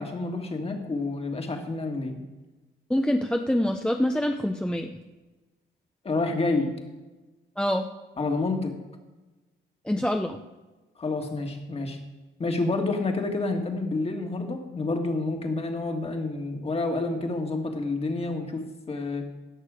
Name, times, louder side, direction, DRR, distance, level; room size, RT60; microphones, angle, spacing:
voice 1, 0.0-2.2 6.0-6.7 8.2-8.7 11.0-12.0 12.4-19.3, left 3 dB, 30° left, 4 dB, 1.8 m, -29 dB
voice 2, 2.9-5.0 7.6-7.9 9.8-10.4, left 1 dB, 5° left, 4 dB, 0.6 m, -25 dB
16.5 x 6.6 x 5.0 m, 1.2 s
cardioid pair, 90°, 20 cm